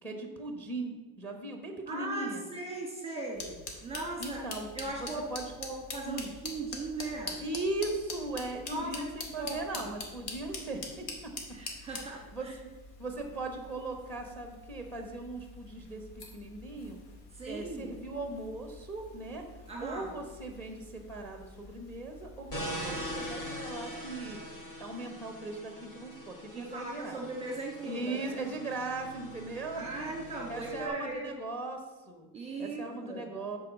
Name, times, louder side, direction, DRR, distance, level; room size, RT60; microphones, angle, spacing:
voice 1, 0.0-2.5 4.2-4.7 5.0-5.5 6.0-6.3 7.4-11.3 11.8-11.9 12.3-12.5 13.0-16.1 16.3-17.0 17.5-19.4 19.8-24.4 24.8-27.2 27.8-32.3 32.6-33.6, right 2 dB, 5° left, 4 dB, 1.0 m, -38 dB
voice 2, 1.9-4.4 4.7-5.3 5.6-7.4 8.7-8.9 9.4-9.8 11.5-12.5 17.3-17.9 19.7-20.1 26.5-28.4 29.7-31.3 32.3-33.2, right 3 dB, 15° right, -1 dB, 1.5 m, -38 dB
sound 1, 3.3-23.3, left 3 dB, 85° left, 2.3 m, -45 dB
sound 2, 22.5-30.9, equal, 30° left, 2.5 m, -42 dB
9.4 x 4.8 x 6.9 m, 1.3 s
cardioid pair, 175°, 44 cm